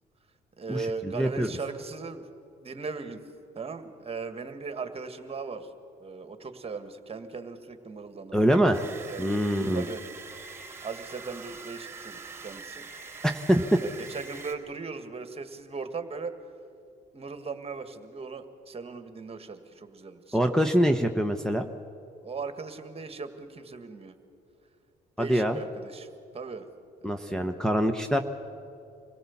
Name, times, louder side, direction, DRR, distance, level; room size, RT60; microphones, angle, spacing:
voice 1, 0.6-2.2 2.6-3.2 3.6-5.7 6.0-8.4 8.7-9.3 9.7-10.0 10.8-12.9 13.8-16.3 17.1-20.4 22.2-24.2 25.2-26.1 26.3-26.7 27.0-27.8, right 4 dB, 35° right, 9 dB, 1.8 m, -38 dB
voice 2, 1.1-1.5 8.3-8.8 9.2-9.8 13.2-13.8 20.3-21.7 25.2-25.6 27.0-28.2, equal, 5° left, 3 dB, 1.0 m, -24 dB
sound 1, 8.7-14.5, right 5 dB, 15° right, 3.8 m, -44 dB
25.5 x 17.0 x 7.3 m, 2.6 s
supercardioid pair, 80°, 18 cm